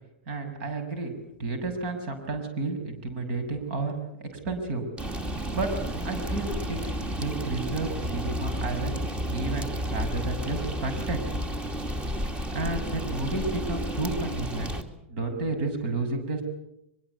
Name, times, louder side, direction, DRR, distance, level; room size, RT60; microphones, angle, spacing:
voice 1, 0.3-1.1 1.4-4.9 5.5-5.7 6.0-9.0 9.3-11.2 12.5-14.7 15.1-16.4, right 3 dB, 55° right, 8 dB, 6.6 m, -31 dB
sound 1, 5.0-14.8, equal, 15° right, 2.5 m, -31 dB
24.0 x 22.0 x 8.3 m, 0.81 s
hypercardioid pair, 115°, 6 cm